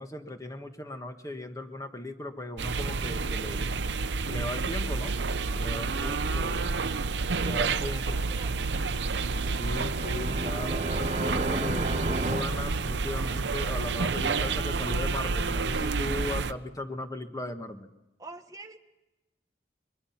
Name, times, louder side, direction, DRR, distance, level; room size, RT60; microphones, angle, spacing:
voice 1, 0.0-3.7 4.3-5.1 5.5-6.7 7.4-8.2 9.6-17.9, left 1 dB, 20° left, 6 dB, 1.5 m, -37 dB
sound 1, 2.6-16.5, right 4 dB, 80° right, 0.7 m, -29 dB
voice 2, 7.3-8.9 18.2-18.8, right 3 dB, 20° right, 4 dB, 1.4 m, -47 dB
sound 2, 9.1-13.5, right 2 dB, 45° right, 1.2 m, -33 dB
23.0 x 21.5 x 5.9 m, 1.0 s
head